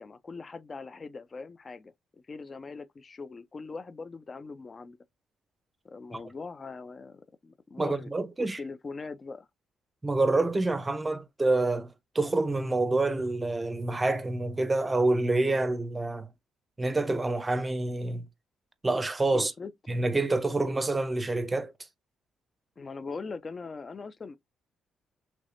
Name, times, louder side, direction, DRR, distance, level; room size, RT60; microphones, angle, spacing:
voice 1, 0.0-1.9 2.3-5.0 5.8-8.1 8.4-9.5 19.3-19.7 22.8-24.4, left 4 dB, 35° left, 0.4 m, -41 dB
voice 2, 7.8-8.6 10.0-16.3 16.8-18.3 18.8-19.5 19.9-21.7, right 2 dB, 20° right, 0.6 m, -27 dB
3.3 x 3.1 x 2.5 m
cardioid pair, 90°, 0 cm